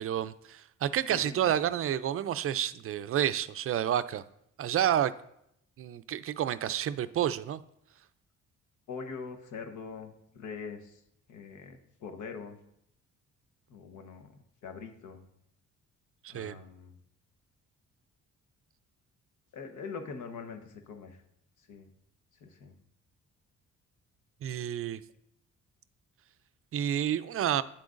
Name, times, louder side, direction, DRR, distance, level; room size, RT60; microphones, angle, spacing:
voice 1, 0.0-4.2 4.6-5.1 5.8-7.6 16.2-16.6 24.4-25.0 26.7-27.6, right 10 dB, 50° right, 13 dB, 0.4 m, -29 dB
voice 2, 1.1-1.6 8.9-11.0 11.3-12.6 13.7-14.3 14.6-15.2 16.3-16.9 19.5-21.2 21.7-21.9 22.4-22.7, left 5 dB, 80° left, 5 dB, 1.0 m, -43 dB
9.0 x 7.8 x 2.5 m, 0.76 s
cardioid pair, 90°, 30 cm